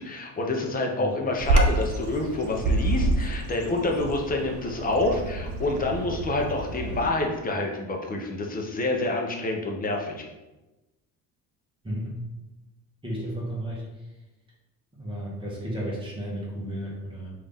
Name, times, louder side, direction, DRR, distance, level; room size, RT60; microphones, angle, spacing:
voice 1, 0.0-10.3, left 2 dB, 25° left, 1 dB, 0.8 m, -27 dB
Bird vocalization bird call bird song, 1.4-7.1, right 2 dB, 55° right, 0.8 m, -27 dB
voice 2, 11.8-12.3 13.0-13.9 14.9-17.3, equal, 15° right, -4 dB, 1.3 m, -33 dB
5.2 x 2.7 x 3.6 m, 1.0 s
cardioid pair, 125°, 35 cm